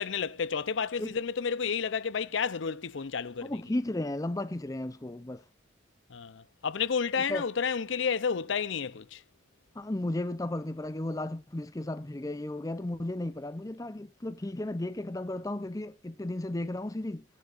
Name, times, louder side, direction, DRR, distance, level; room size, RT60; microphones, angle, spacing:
voice 1, 0.0-3.6 6.1-9.2, left 6 dB, 65° left, 0.6 m, -31 dB
voice 2, 3.4-5.4 7.3-7.4 9.8-17.2, left 1 dB, 15° left, 0.5 m, -34 dB
19.0 x 10.5 x 2.5 m
head